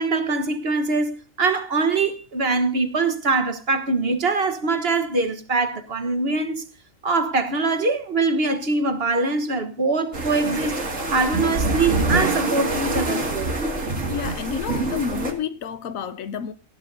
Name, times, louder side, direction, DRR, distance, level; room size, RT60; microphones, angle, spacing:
voice 1, 0.0-6.6 7.0-10.8 11.1-13.5, right 3 dB, 50° right, 1.4 m, -23 dB
sound 1, 10.1-15.3, right 2 dB, 70° right, 2.8 m, -25 dB
voice 2, 14.1-16.5, left 7 dB, 85° left, 1.3 m, -29 dB
18.0 x 14.0 x 2.7 m
omnidirectional pair, 1.4 m